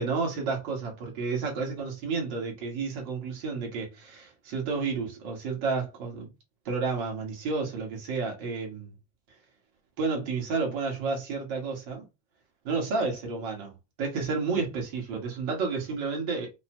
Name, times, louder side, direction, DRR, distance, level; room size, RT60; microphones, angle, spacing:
voice 1, 0.0-6.3 6.7-8.9 10.0-12.0 12.6-16.6, right 4 dB, 40° right, 2.0 m, -31 dB
6.3 x 2.7 x 3.0 m
omnidirectional pair, 3.6 m